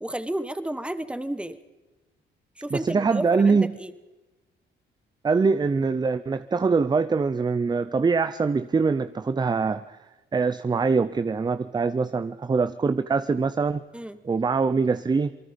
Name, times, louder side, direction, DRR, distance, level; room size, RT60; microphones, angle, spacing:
voice 1, 0.0-1.6 2.6-3.9 13.9-14.2, right 1 dB, 5° right, 13 dB, 1.2 m, -32 dB
voice 2, 2.7-3.7 5.2-10.0 10.3-13.8 14.2-15.4, right 4 dB, 20° right, 14 dB, 0.6 m, -23 dB
27.5 x 20.0 x 5.2 m, 1.2 s
cardioid pair, 90°, 20 cm